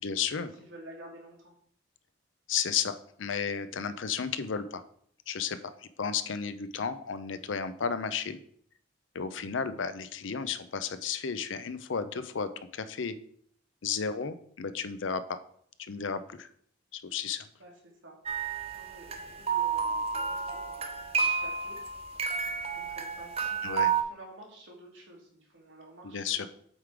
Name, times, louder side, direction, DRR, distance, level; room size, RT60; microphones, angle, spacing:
voice 1, 0.0-0.5 2.5-4.8 5.3-5.7 6.0-8.4 9.1-13.1 13.8-15.4 15.9-16.5 16.9-17.5 23.6-23.9 26.0-26.5, left 6 dB, 80° left, 12 dB, 0.6 m, -33 dB
voice 2, 0.6-1.5 17.6-17.7 18.0-18.2 18.7-20.4 20.8-21.8 22.7-26.5, right 1 dB, 80° right, -1 dB, 2.2 m, -51 dB
sound 1, 18.3-24.0, right 6 dB, 30° right, 0.7 m, -31 dB
8.0 x 3.8 x 4.7 m, 0.64 s
head